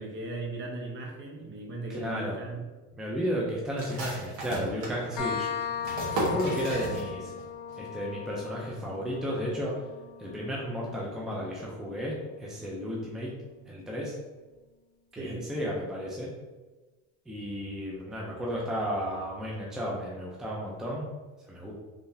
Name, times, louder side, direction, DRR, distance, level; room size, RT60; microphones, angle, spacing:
voice 1, 0.0-2.6 15.2-15.5, right 2 dB, 35° right, 0 dB, 0.8 m, -38 dB
voice 2, 1.9-2.4 3.0-5.8 6.1-7.3 7.8-9.7 10.2-13.3 13.7-14.1 15.1-16.3 17.3-21.1 21.4-21.7, equal, ahead, -4 dB, 0.5 m, -33 dB
sound 1, 3.8-7.4 7.7-7.8 8.2-8.7, right 2 dB, 70° right, 1.4 m, -34 dB
sound 2, 5.2-12.6, left 8 dB, 75° left, 0.8 m, -38 dB
3.7 x 3.3 x 2.7 m, 1.2 s
cardioid pair, 130°, 34 cm